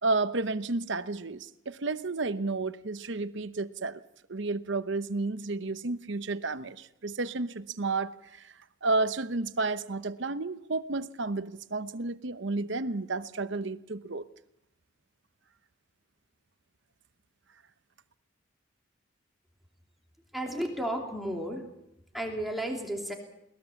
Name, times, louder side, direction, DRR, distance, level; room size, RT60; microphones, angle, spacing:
voice 1, 0.0-4.0 4.3-8.5 8.8-14.2, right 3 dB, 60° right, 13 dB, 0.9 m, -31 dB
voice 2, 20.3-21.6 22.1-23.1, right 1 dB, ahead, 1 dB, 3.0 m, -33 dB
22.0 x 20.0 x 7.1 m, 0.81 s
head